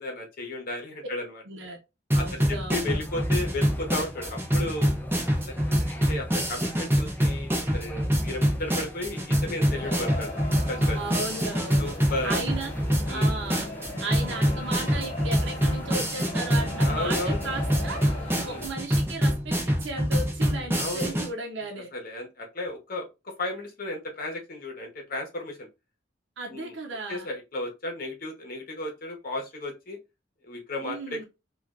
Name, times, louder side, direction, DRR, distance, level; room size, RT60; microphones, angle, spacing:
voice 1, 0.0-1.4 2.2-4.9 5.5-10.3 10.7-11.0 11.8-12.4 13.1-13.3 16.8-17.5 18.4-18.7 20.7-21.2 21.9-25.7 26.5-26.8 27.1-30.0 30.4-31.2, left 2 dB, 50° left, 0.9 m, -34 dB
voice 2, 1.5-1.8 2.1-3.0 10.9-11.9 12.2-12.7 13.0-13.7 14.0-18.0 18.4-21.9 26.4-27.3 30.8-31.2, right 3 dB, 75° right, 0.7 m, -35 dB
sound 1, 2.1-21.3, equal, 15° right, 0.7 m, -26 dB
sound 2, 3.0-18.7, left 1 dB, 10° left, 0.3 m, -44 dB
sound 3, 9.7-18.7, left 1 dB, 35° left, 1.3 m, -39 dB
3.2 x 2.4 x 2.4 m
head